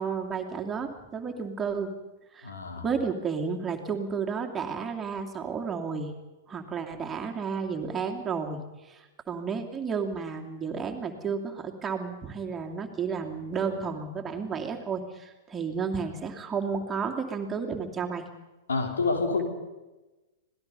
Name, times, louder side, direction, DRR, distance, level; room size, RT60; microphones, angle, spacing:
voice 1, 0.0-1.9 2.3-2.5 2.8-6.1 6.5-8.6 8.9-18.2, right 5 dB, 20° right, 2 dB, 2.6 m, -32 dB
voice 2, 2.4-2.9 18.7-19.4, left 4 dB, 80° left, 3 dB, 4.1 m, -27 dB
25.5 x 18.5 x 5.6 m, 1.1 s
hypercardioid pair, 105°, 0 cm